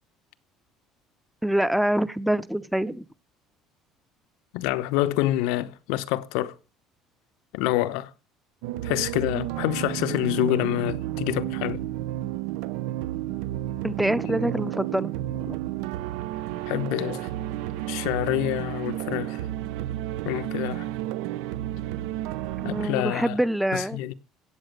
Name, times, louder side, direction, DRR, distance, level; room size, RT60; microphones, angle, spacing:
voice 1, 1.4-3.1 13.8-15.6 22.6-24.0, right 1 dB, ahead, 0.6 m, -25 dB
voice 2, 4.5-6.6 7.5-8.1 8.8-11.8 16.7-17.3 17.9-19.4 20.2-20.9 22.6-23.4 23.7-24.1, left 15 dB, 90° left, 0.9 m, -27 dB
sound 1, 8.6-22.9, right 14 dB, 90° right, 0.8 m, -31 dB
16.0 x 8.1 x 6.7 m
cardioid pair, 160°, 0 cm